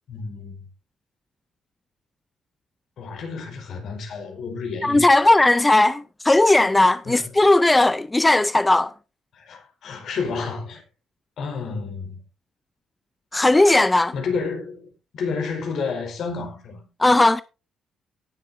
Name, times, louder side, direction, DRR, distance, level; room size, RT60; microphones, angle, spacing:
voice 1, 0.1-0.7 3.0-5.1 7.0-7.3 9.3-10.8 11.4-12.2 14.1-16.8, left 4 dB, 65° left, 4.5 m, -30 dB
voice 2, 4.8-8.9 13.3-14.1 17.0-17.4, left 2 dB, 15° left, 0.5 m, -17 dB
18.0 x 7.7 x 2.6 m
cardioid pair, 90°, 0 cm